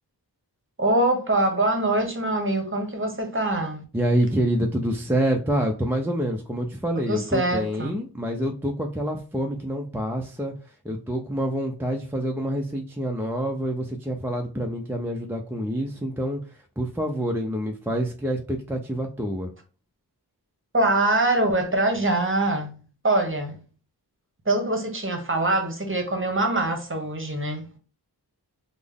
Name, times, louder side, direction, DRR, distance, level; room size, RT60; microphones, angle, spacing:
voice 1, 0.8-3.8 6.9-8.0 20.7-23.6 24.5-27.7, right 2 dB, 30° right, 0.8 m, -24 dB
voice 2, 3.9-10.5 10.8-16.4 16.8-19.5, equal, 5° right, 0.4 m, -27 dB
3.5 x 2.0 x 3.4 m
wide cardioid pair, 45°, 41 cm